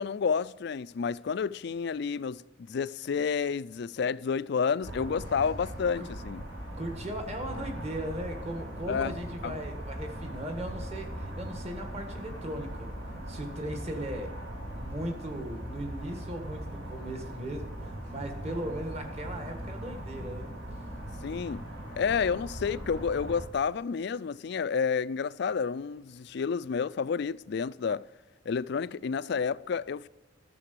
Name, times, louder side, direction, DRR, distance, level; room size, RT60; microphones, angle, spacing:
voice 1, 0.0-6.4 8.9-9.1 9.4-9.6 21.2-21.6 22.0-28.0 28.5-30.1, left 6 dB, 55° left, 0.4 m, -30 dB
sound 1, 4.8-23.5, equal, 75° right, 3.5 m, -40 dB
voice 2, 6.0-6.3 6.8-12.9 13.3-14.3 14.7-20.5, right 1 dB, 35° right, 1.7 m, -38 dB
13.0 x 6.9 x 6.8 m
head